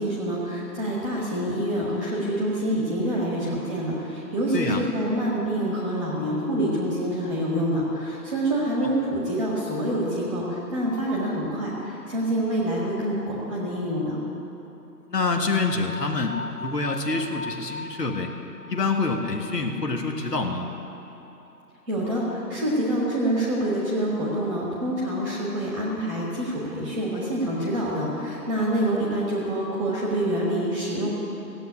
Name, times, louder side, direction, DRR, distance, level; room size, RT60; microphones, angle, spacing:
voice 1, 0.0-14.2 21.9-31.1, right 1 dB, ahead, -4 dB, 1.3 m, -26 dB
voice 2, 15.1-18.3 18.7-20.7, left 3 dB, 80° left, 3 dB, 1.8 m, -26 dB
sound 1, 15.5-20.6, left 3 dB, 60° left, 1.2 m, -39 dB
16.5 x 7.9 x 9.7 m, 3.0 s
figure-of-eight pair, 150°, 48 cm